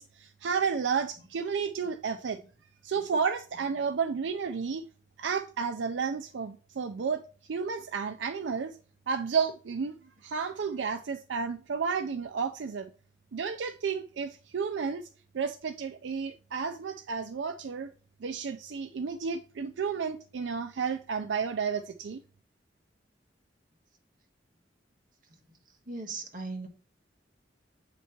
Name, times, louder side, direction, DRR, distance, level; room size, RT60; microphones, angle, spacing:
voice 1, 0.0-2.4 2.8-4.8 5.2-7.2 7.5-8.8 9.1-9.9 10.2-12.9 13.3-15.1 15.3-17.9 18.2-22.2, right 6 dB, 75° right, 0.4 m, -32 dB
voice 2, 25.9-26.7, right 3 dB, 50° right, 1.2 m, -38 dB
8.1 x 3.0 x 4.3 m
head